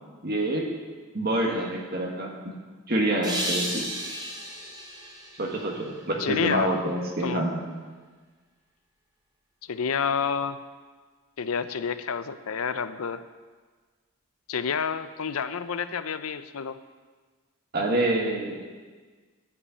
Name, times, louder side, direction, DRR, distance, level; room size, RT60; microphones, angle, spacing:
voice 1, 0.2-0.7 1.1-2.5 2.9-3.9 5.4-7.6 17.7-18.6, right 1 dB, 45° right, 0 dB, 1.7 m, -27 dB
sound 1, 3.2-6.4, equal, 20° right, 2.1 m, -34 dB
voice 2, 6.2-6.7 7.2-7.4 9.6-10.6 11.4-13.2 14.5-16.8, left 6 dB, 80° left, 13 dB, 0.6 m, -29 dB
12.5 x 5.5 x 8.3 m, 1.4 s
head